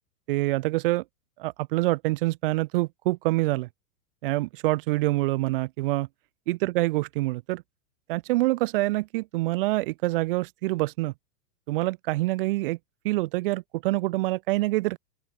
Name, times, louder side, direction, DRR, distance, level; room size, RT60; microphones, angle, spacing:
voice 1, 0.3-1.0 1.4-3.7 4.2-6.1 6.5-7.6 8.1-11.1 11.7-12.8 13.0-15.0, right 20 dB, 35° right, 2.6 m, -26 dB
open air
supercardioid pair, 175°, 50 cm